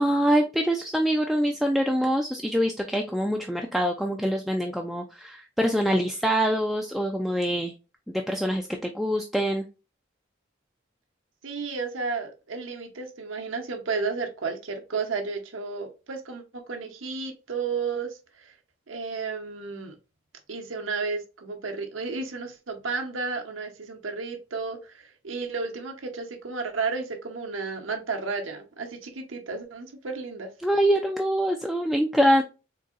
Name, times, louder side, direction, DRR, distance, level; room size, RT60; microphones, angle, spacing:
voice 1, 0.0-7.7 8.1-9.6 30.6-32.4, equal, ahead, 0.3 m, -24 dB
voice 2, 11.4-18.5 18.9-19.9 20.5-30.5, right 4 dB, 80° right, 0.8 m, -32 dB
3.9 x 2.7 x 2.4 m
head